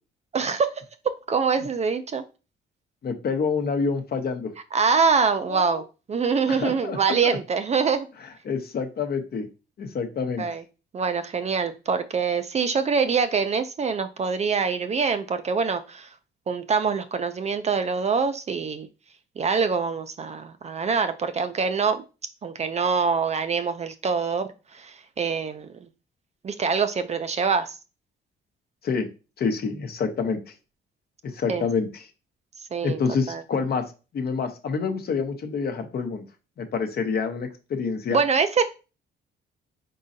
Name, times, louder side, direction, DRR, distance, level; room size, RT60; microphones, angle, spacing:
voice 1, 0.3-2.2 4.7-5.8 6.1-8.1 10.4-10.6 10.9-16.1 16.5-18.9 19.4-22.0 22.4-25.9 26.4-27.8 31.5-31.6 32.7-33.0 33.3-33.4 38.1-38.6, right 5 dB, 35° right, 0.4 m, -24 dB
voice 2, 3.0-4.5 5.5-5.8 6.5-7.4 8.4-9.5 9.8-10.5 28.8-29.1 29.4-30.5 31.2-32.0 32.8-36.2 36.6-38.2, left 5 dB, 50° left, 0.8 m, -27 dB
4.0 x 3.8 x 2.6 m
cardioid pair, 90°, 20 cm